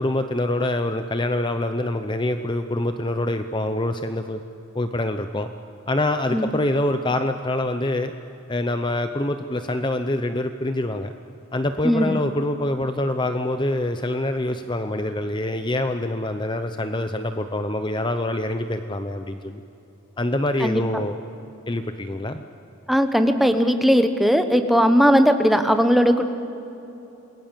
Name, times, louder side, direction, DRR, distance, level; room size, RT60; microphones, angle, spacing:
voice 1, 0.0-4.4 4.7-5.5 5.9-8.1 8.5-11.1 11.5-19.6 20.2-21.2 21.7-22.4, left 1 dB, 20° left, 8 dB, 0.7 m, -25 dB
voice 2, 11.8-12.2 20.6-20.8 22.9-26.2, equal, ahead, 7 dB, 1.1 m, -18 dB
27.5 x 20.5 x 7.4 m, 3.0 s
head